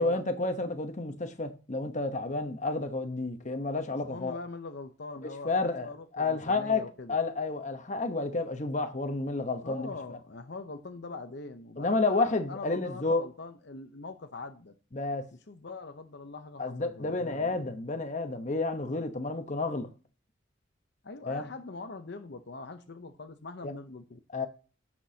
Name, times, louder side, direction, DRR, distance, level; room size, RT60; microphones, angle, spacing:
voice 1, 0.0-4.4 5.4-9.9 11.8-13.2 14.9-15.3 16.6-19.9 21.3-21.5 23.6-23.7 24.3-24.5, left 3 dB, 35° left, 1.0 m, -30 dB
voice 2, 3.9-7.2 9.6-14.7 15.5-17.7 21.0-24.2, left 3 dB, 60° left, 0.7 m, -43 dB
16.0 x 6.1 x 2.8 m
head